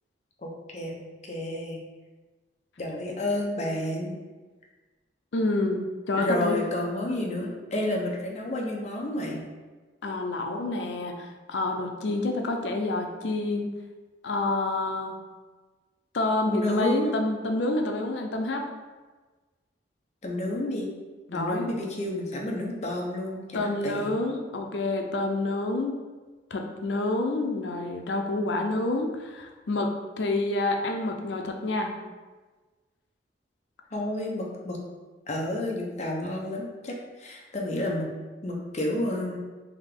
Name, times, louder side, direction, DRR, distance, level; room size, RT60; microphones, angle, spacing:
voice 1, 0.4-1.8 2.8-4.2 6.2-9.4 16.5-17.1 20.2-20.9 21.3-24.2 33.9-34.8 35.3-38.1 38.4-39.4, left 1 dB, 40° left, -1 dB, 0.7 m, -30 dB
voice 2, 5.3-5.8 6.1-6.6 10.0-13.7 14.2-15.1 16.1-18.6 21.3-21.7 23.5-26.0 26.5-29.9 30.2-31.9, left 2 dB, 85° left, 3 dB, 0.5 m, -28 dB
3.6 x 2.8 x 3.6 m, 1.3 s
head